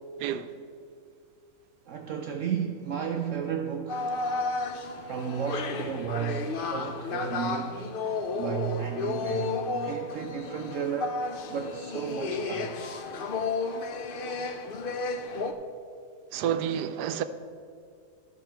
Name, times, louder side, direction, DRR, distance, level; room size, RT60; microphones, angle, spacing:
voice 1, 0.2-0.5 16.3-17.2, right 9 dB, 85° right, 1.2 m, -29 dB
voice 2, 1.9-4.2 5.0-7.8 8.3-12.8, right 7 dB, 65° right, 0.8 m, -33 dB
sound 1, 3.9-15.5, left 3 dB, 70° left, 0.5 m, -32 dB
13.5 x 6.2 x 4.5 m
omnidirectional pair, 1.7 m